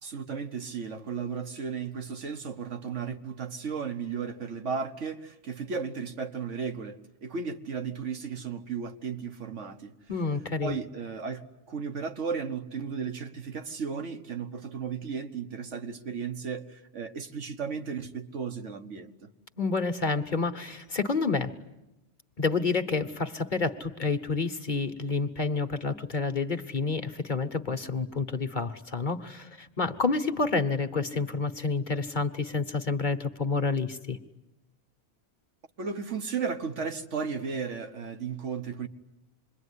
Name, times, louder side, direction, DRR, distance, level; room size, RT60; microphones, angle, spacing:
voice 1, 0.0-9.9 10.6-19.3 35.8-38.9, right 6 dB, 90° right, 1.7 m, -35 dB
voice 2, 10.1-10.8 19.6-21.5 22.4-34.2, left 4 dB, 45° left, 1.3 m, -29 dB
27.0 x 22.5 x 9.8 m
omnidirectional pair, 1.2 m